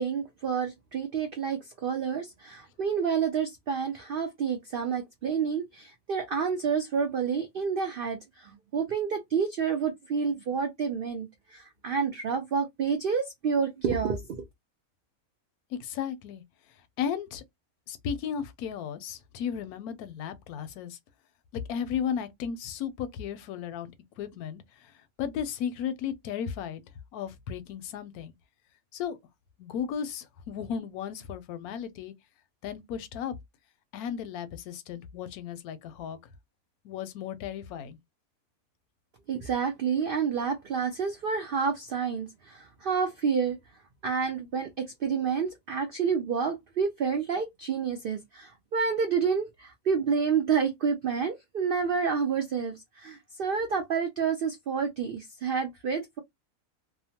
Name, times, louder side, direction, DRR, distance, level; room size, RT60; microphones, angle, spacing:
voice 1, 0.0-14.4 39.3-43.6 44.0-56.2, right 6 dB, 90° right, 0.4 m, -29 dB
voice 2, 15.7-16.4 17.0-17.4 17.9-21.0 21.5-26.8 27.1-28.3 28.9-29.2 29.6-32.1 32.6-33.3 33.9-36.2 36.8-38.0, left 8 dB, 85° left, 1.1 m, -35 dB
2.8 x 2.0 x 2.7 m
omnidirectional pair, 1.5 m